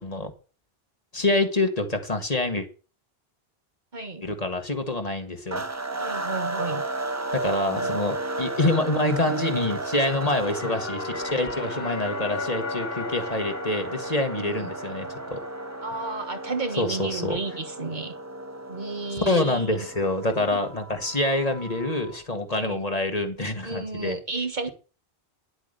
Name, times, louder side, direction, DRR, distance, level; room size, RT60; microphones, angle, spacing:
voice 1, 1.1-2.7 4.2-5.6 7.3-15.4 16.8-17.4 19.3-24.2, left 2 dB, 40° left, 1.9 m, -26 dB
voice 2, 3.9-4.2 6.0-6.8 7.7-7.9 14.4-14.7 15.8-18.1 18.7-19.8 20.5-20.6 22.5-22.8 23.6-24.7, right 3 dB, 50° right, 1.5 m, -32 dB
sound 1, 5.5-22.2, right 2 dB, 20° right, 0.7 m, -34 dB
sound 2, 9.7-16.6, left 5 dB, 65° left, 1.3 m, -38 dB
11.0 x 8.1 x 6.7 m
omnidirectional pair, 1.0 m